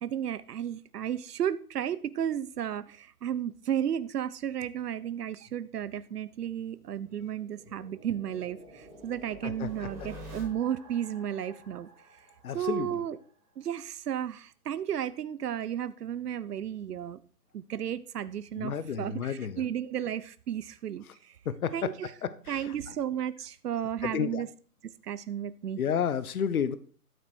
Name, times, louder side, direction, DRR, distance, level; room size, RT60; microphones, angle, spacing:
voice 1, 0.0-11.9 12.5-13.2 13.6-17.2 17.5-21.4 21.7-22.1 22.5-24.5 24.8-25.8, right 10 dB, 85° right, 15 dB, 0.8 m, -33 dB
sound 1, 6.5-13.2, right 1 dB, 5° right, 1.0 m, -49 dB
voice 2, 12.4-12.9 18.6-19.6 21.5-21.7 24.0-24.4 25.8-26.8, left 8 dB, 65° left, 14 dB, 1.0 m, -30 dB
13.0 x 7.6 x 4.5 m, 0.43 s
hypercardioid pair, 180°, 46 cm